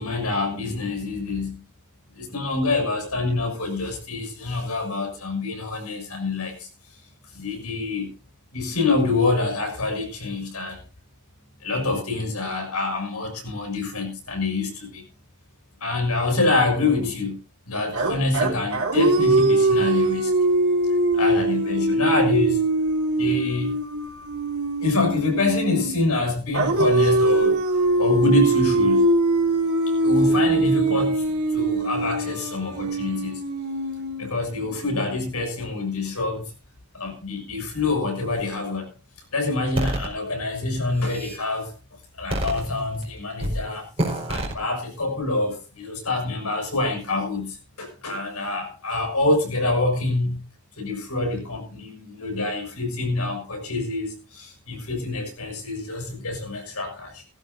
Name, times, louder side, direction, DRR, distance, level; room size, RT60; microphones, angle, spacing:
voice 1, 0.0-1.6 2.1-6.7 7.3-8.1 8.5-10.8 11.6-15.0 15.8-17.4 17.7-20.3 21.1-22.6 23.2-23.7 24.8-29.1 30.0-31.3 31.5-33.4 34.2-36.4 36.9-38.9 39.3-41.7 42.2-43.9 44.3-50.4 50.8-57.2, left 2 dB, 80° left, 4 dB, 6.7 m, -26 dB
sound 1, 17.9-26.0 26.5-34.6, right 2 dB, 75° right, 3.6 m, -22 dB
sound 2, 39.8-40.1 40.8-41.4 42.3-43.0 43.4-43.6 44.0-44.5, right 1 dB, 25° right, 4.8 m, -27 dB
19.0 x 15.0 x 2.7 m, 0.33 s
head